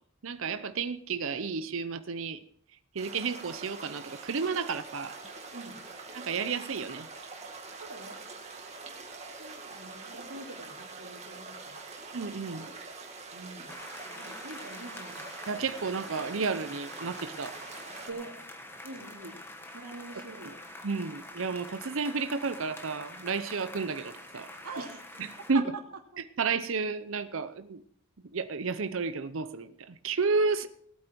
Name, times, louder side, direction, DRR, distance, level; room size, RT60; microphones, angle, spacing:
voice 1, 0.2-2.4 2.9-5.2 6.1-7.1 12.1-12.7 15.5-17.6 20.8-24.5 25.5-25.6 26.4-27.8 28.3-30.7, right 4 dB, 65° right, 11 dB, 0.7 m, -31 dB
sound 1, 3.0-18.1, right 4 dB, 30° right, 2.1 m, -45 dB
voice 2, 7.8-8.2 9.4-11.8 13.3-13.8 14.1-15.2 18.1-18.4 18.8-19.4 19.7-20.6 24.6-25.0 25.5-25.6, right 3 dB, 90° right, 1 dB, 2.9 m, -43 dB
sound 2, 13.7-25.5, left 1 dB, 10° left, 1.2 m, -46 dB
18.5 x 8.9 x 4.6 m, 0.64 s
head